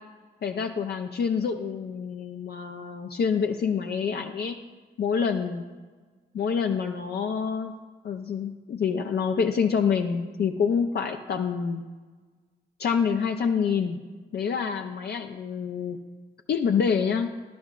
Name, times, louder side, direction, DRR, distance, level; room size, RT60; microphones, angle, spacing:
voice 1, 0.4-4.6 5.0-5.6 6.3-7.7 8.0-11.8 12.8-14.0 14.3-16.0 16.5-17.3, left 6 dB, 55° left, 5 dB, 0.5 m, -27 dB
11.0 x 7.2 x 2.4 m, 1.4 s
hypercardioid pair, 40°, 20 cm